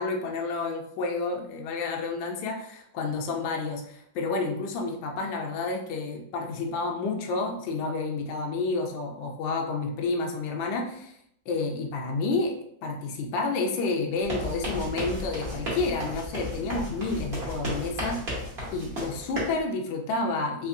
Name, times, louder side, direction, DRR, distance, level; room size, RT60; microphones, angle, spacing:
voice 1, 0.0-11.1 11.5-12.6 12.8-18.2 18.7-20.7, left 3 dB, 75° left, 1 dB, 1.3 m, -30 dB
sound 1, 14.2-19.6, equal, 40° right, 1.1 m, -34 dB
3.5 x 3.0 x 2.5 m, 0.72 s
omnidirectional pair, 2.3 m